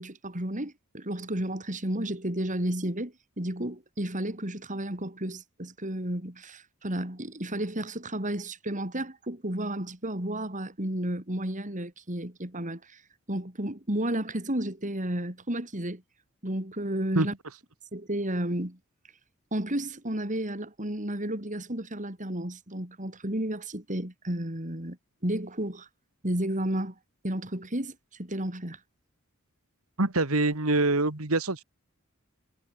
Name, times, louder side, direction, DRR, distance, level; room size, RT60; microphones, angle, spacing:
voice 1, 0.0-13.0 13.3-16.0 16.4-17.3 17.9-18.8 19.5-25.0 25.2-25.9 26.2-26.9 27.2-28.8, right 1 dB, 35° right, 4.7 m, -32 dB
voice 2, 30.0-31.6, right 2 dB, 85° right, 2.3 m, -25 dB
head